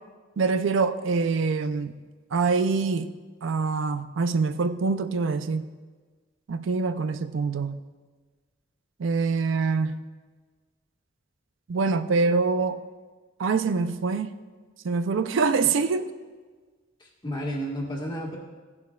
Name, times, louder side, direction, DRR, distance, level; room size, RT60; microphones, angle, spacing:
voice 1, 0.4-1.9 2.3-3.1 3.4-5.7 6.5-7.8 9.0-10.0 11.7-12.8 13.4-14.3 14.8-16.1, right 4 dB, 75° right, 11 dB, 0.4 m, -25 dB
voice 2, 17.0-18.4, equal, 25° left, -2 dB, 1.6 m, -32 dB
15.5 x 10.5 x 2.3 m, 1.4 s
head